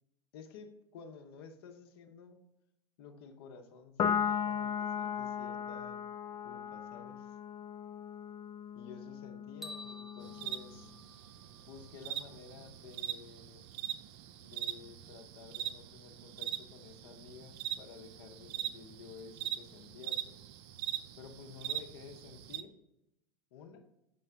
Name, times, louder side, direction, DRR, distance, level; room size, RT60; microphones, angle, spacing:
voice 1, 0.3-2.4 3.0-6.0 6.4-7.4 8.7-10.9 11.6-13.6 14.4-20.4 21.2-22.8 23.5-23.9, left 6 dB, 65° left, 5 dB, 0.8 m, -52 dB
Piano, 4.0-10.7, left 7 dB, 30° left, 0.3 m, -37 dB
sound 1, 9.6-11.9, left 1 dB, 5° right, 0.9 m, -50 dB
sound 2, 10.2-22.6, right 11 dB, 55° right, 0.4 m, -42 dB
5.6 x 5.4 x 3.3 m, 0.91 s
hypercardioid pair, 85°, 13 cm